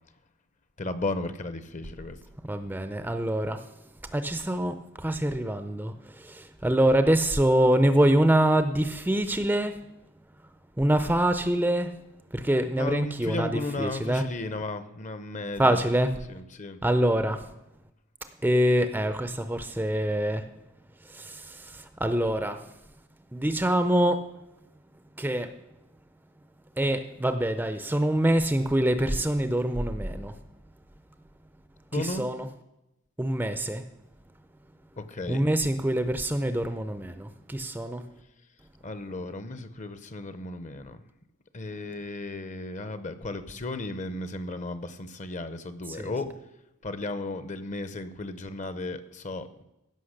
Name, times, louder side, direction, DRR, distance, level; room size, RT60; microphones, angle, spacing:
voice 1, 0.8-2.2 12.8-15.9 16.3-16.8 31.9-32.3 35.0-35.5 38.8-41.0 41.5-46.3 46.8-49.5, left 2 dB, 35° left, 12 dB, 0.8 m, -34 dB
voice 2, 2.4-3.7 4.0-9.8 10.8-11.9 12.3-14.3 15.6-16.2 16.8-17.5 18.4-20.5 21.0-22.7 23.3-24.2 25.2-25.6 26.8-30.4 31.9-32.5 33.2-33.8 35.3-38.1 45.9-46.1, right 1 dB, 10° right, 10 dB, 0.5 m, -25 dB
16.0 x 6.1 x 6.5 m, 0.89 s
head